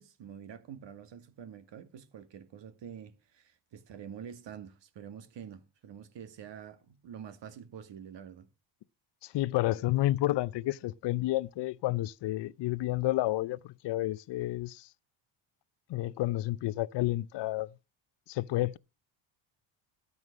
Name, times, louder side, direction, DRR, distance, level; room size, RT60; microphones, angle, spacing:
voice 1, 0.0-8.5, right 8 dB, 60° right, 2.0 m, -47 dB
voice 2, 9.2-14.9 15.9-17.7 18.3-18.8, left 16 dB, 60° left, 0.6 m, -30 dB
12.5 x 8.1 x 6.0 m
cardioid pair, 95°, 49 cm